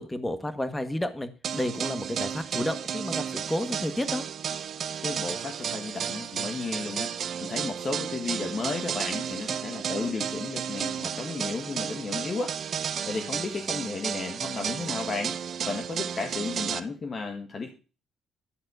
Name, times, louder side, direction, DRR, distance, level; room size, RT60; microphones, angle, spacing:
voice 1, 0.0-4.3, left 1 dB, 15° left, 10 dB, 1.5 m, -31 dB
sound 1, 1.4-16.8, right 8 dB, 60° right, 0.7 m, -33 dB
voice 2, 5.0-7.1 7.4-17.7, left 4 dB, 40° left, 4 dB, 1.6 m, -34 dB
11.5 x 4.2 x 8.0 m, 0.35 s
cardioid pair, 90°, 0 cm